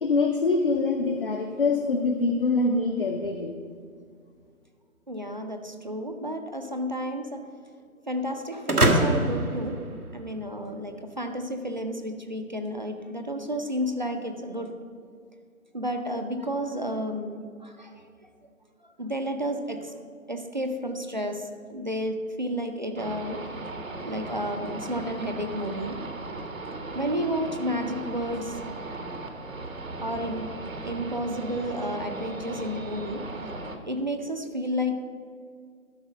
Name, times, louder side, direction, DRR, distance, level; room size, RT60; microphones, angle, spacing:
voice 1, 0.0-3.6, left 3 dB, 40° left, 3 dB, 0.6 m, -24 dB
voice 2, 5.1-7.5 8.1-9.8 10.1-14.7 15.7-18.3 18.8-19.9 20.3-23.4 23.7-23.8 24.1-26.0 26.7-28.6 30.0-30.5 30.8-33.3 33.9-34.9, equal, 35° right, 6 dB, 0.5 m, -31 dB
sound 1, 8.7-10.6, right 1 dB, 90° right, 1.4 m, -24 dB
sound 2, 23.0-33.8, right 2 dB, 70° right, 1.2 m, -37 dB
12.0 x 4.7 x 6.2 m, 2.1 s
figure-of-eight pair, 150°, 43 cm